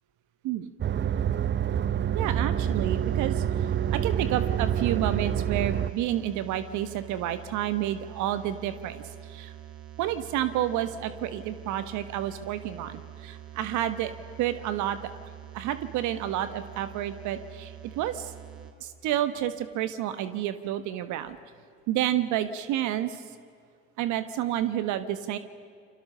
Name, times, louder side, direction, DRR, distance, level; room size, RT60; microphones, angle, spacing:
sound 1, 0.8-5.9, right 9 dB, 35° right, 0.8 m, -27 dB
voice 1, 2.1-3.4 3.9-9.0 9.3-9.5 10.0-14.1 14.4-15.1 15.5-18.3 18.8-21.4 21.9-23.2 24.0-25.4, right 12 dB, 65° right, 11 dB, 1.3 m, -30 dB
sound 2, 2.6-18.7, right 11 dB, 85° right, 2.1 m, -45 dB
29.0 x 23.5 x 6.7 m, 2.3 s
hypercardioid pair, 60°, 32 cm